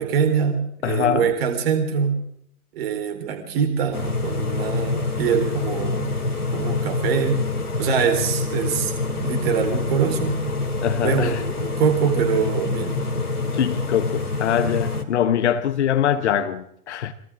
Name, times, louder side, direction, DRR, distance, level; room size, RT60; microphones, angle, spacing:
voice 1, 0.0-2.2 2.7-6.1 6.5-7.4 7.8-10.4 11.0-13.1, right 7 dB, 40° right, 4.3 m, -24 dB
voice 2, 0.8-1.3 10.8-11.4 13.4-17.1, left 9 dB, 50° left, 1.2 m, -23 dB
sound 1, 3.9-15.0, left 3 dB, 85° left, 2.6 m, -26 dB
30.0 x 24.0 x 3.8 m
figure-of-eight pair, 120°, 44 cm